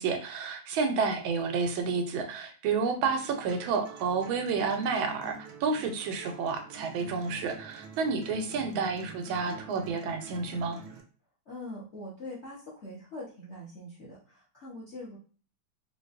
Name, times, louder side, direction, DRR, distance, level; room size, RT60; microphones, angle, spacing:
voice 1, 0.0-10.8, right 5 dB, 90° right, 5 dB, 1.4 m, -30 dB
sound 1, 3.0-11.0, right 6 dB, 75° right, 1.1 m, -47 dB
voice 2, 8.5-9.1 11.5-15.2, left 1 dB, 55° left, -6 dB, 0.8 m, -43 dB
4.1 x 2.3 x 2.4 m, 0.38 s
omnidirectional pair, 2.2 m